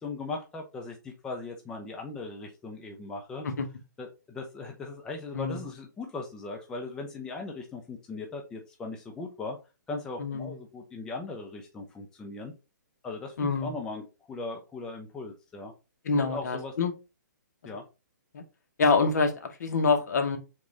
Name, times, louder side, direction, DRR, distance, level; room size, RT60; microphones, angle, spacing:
voice 1, 0.0-3.5 4.0-9.6 9.9-12.5 13.0-15.7 16.2-16.7 17.6-17.8, left 3 dB, 5° left, 1 dB, 0.4 m, -38 dB
voice 2, 10.2-10.6 13.4-13.7 16.0-16.9 18.3-18.4 18.8-20.4, left 4 dB, 60° left, 6 dB, 1.0 m, -26 dB
3.6 x 3.1 x 3.9 m, 0.28 s
hypercardioid pair, 160°, 10 cm